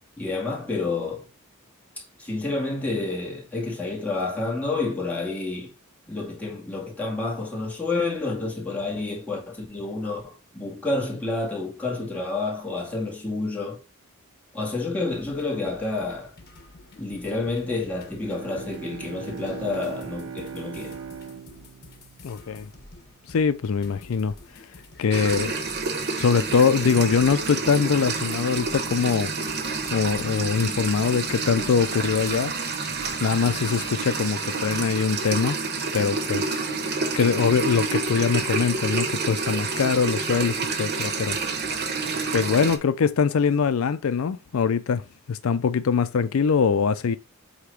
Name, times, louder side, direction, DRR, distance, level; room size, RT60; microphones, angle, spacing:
voice 1, 0.2-1.3 2.0-5.7 6.1-13.8 14.5-16.4 17.0-20.9, left 3 dB, 5° left, 2.1 m, -29 dB
sound 1, 15.1-33.9, left 2 dB, 45° left, 1.4 m, -49 dB
Bowed string instrument, 18.1-22.9, right 7 dB, 70° right, 0.7 m, -40 dB
voice 2, 22.2-22.7 23.3-24.3 25.0-25.5 26.2-29.3 29.9-32.5 33.2-35.6 35.9-36.6 37.2-41.4 42.3-45.0 45.3-47.2, left 6 dB, 70° left, 0.4 m, -23 dB
sound 2, 25.1-42.8, right 4 dB, 50° right, 1.1 m, -28 dB
8.0 x 2.9 x 5.0 m
head